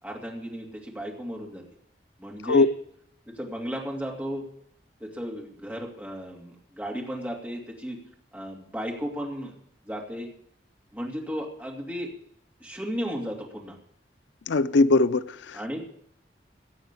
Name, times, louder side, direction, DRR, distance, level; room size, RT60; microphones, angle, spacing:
voice 1, 0.0-1.6 2.2-2.7 3.3-4.5 5.0-8.0 8.3-9.5 9.8-10.3 10.9-12.1 12.6-13.8 15.5-15.8, equal, 10° right, 2.6 m, -34 dB
voice 2, 14.5-15.8, left 3 dB, 85° left, 0.5 m, -21 dB
17.0 x 7.1 x 8.3 m
head